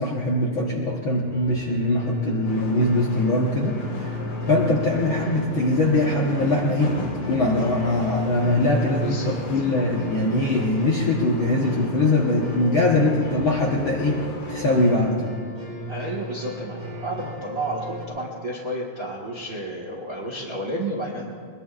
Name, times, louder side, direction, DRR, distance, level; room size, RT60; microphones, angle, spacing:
voice 1, 0.0-4.2 4.5-7.0 7.3-14.2 14.5-15.3, left 1 dB, 60° left, -2 dB, 1.3 m, -22 dB
sound 1, 1.3-18.1, left 2 dB, 15° right, 2.3 m, -36 dB
sound 2, 2.4-15.0, left 2 dB, 90° left, 4.1 m, -34 dB
voice 2, 9.0-9.3 15.9-21.2, right 1 dB, 50° right, -2 dB, 1.1 m, -31 dB
22.0 x 21.5 x 2.4 m, 2.1 s
omnidirectional pair, 3.8 m